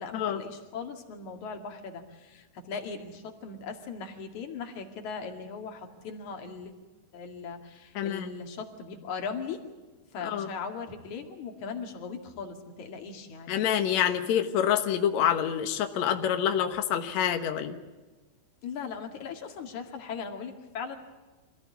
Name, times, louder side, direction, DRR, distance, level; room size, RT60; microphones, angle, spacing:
voice 1, 0.0-6.7 7.1-9.6 10.1-13.5 18.6-21.0, left 5 dB, 50° left, 4 dB, 3.0 m, -39 dB
voice 2, 7.9-8.3 10.2-10.5 13.5-17.8, left 9 dB, 85° left, 6 dB, 1.5 m, -27 dB
25.5 x 16.0 x 8.2 m, 1.3 s
omnidirectional pair, 5.2 m